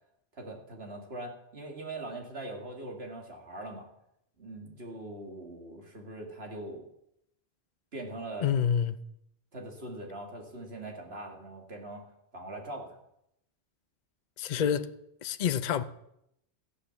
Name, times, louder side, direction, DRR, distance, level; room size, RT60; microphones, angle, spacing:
voice 1, 0.3-3.9 4.4-6.8 7.9-8.5 9.5-12.0 12.3-13.0 14.5-14.8, right 2 dB, 70° right, 2.6 m, -41 dB
voice 2, 8.4-9.0 14.4-14.9 15.2-15.8, left 8 dB, 50° left, 0.7 m, -27 dB
14.5 x 8.6 x 7.2 m
omnidirectional pair, 1.1 m